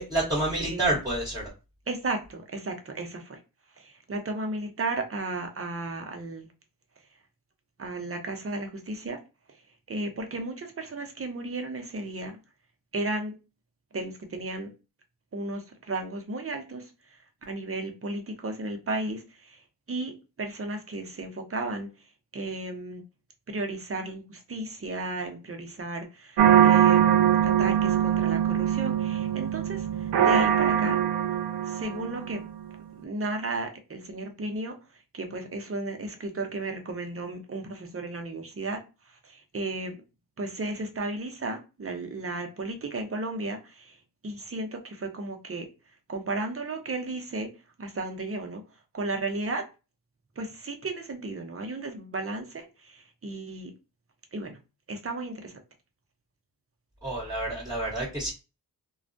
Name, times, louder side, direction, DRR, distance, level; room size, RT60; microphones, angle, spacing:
voice 1, 0.0-1.5 57.0-58.3, right 1 dB, 10° right, 1.2 m, -28 dB
voice 2, 0.6-0.9 1.9-3.4 3.7-6.5 7.8-9.2 9.5-9.6 9.9-12.4 12.9-13.3 13.9-14.7 15.3-23.0 23.5-27.0 27.4-31.0 31.6-32.4 33.0-40.0 40.4-45.7 46.1-47.5 47.8-48.6 48.9-49.6 50.4-53.7 54.3-54.6 54.9-55.6, right 2 dB, 35° right, 0.7 m, -34 dB
sound 1, 26.4-32.5, right 10 dB, 85° right, 0.5 m, -22 dB
2.3 x 2.2 x 2.5 m
cardioid pair, 50°, 39 cm